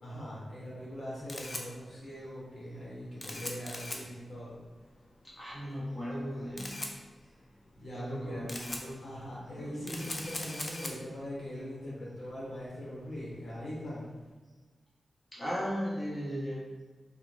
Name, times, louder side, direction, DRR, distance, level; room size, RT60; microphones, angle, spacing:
voice 1, 0.0-4.6 7.2-7.3 7.7-8.5 9.0-14.1, equal, 65° left, -7 dB, 0.9 m, -41 dB
Camera, 0.9-14.3, left 1 dB, 40° left, 0.4 m, -44 dB
voice 2, 5.2-6.8 7.9-9.0 9.5-10.3 15.3-16.6, equal, 20° left, -8 dB, 0.9 m, -37 dB
2.2 x 2.0 x 3.0 m, 1.3 s
cardioid pair, 65°, 0 cm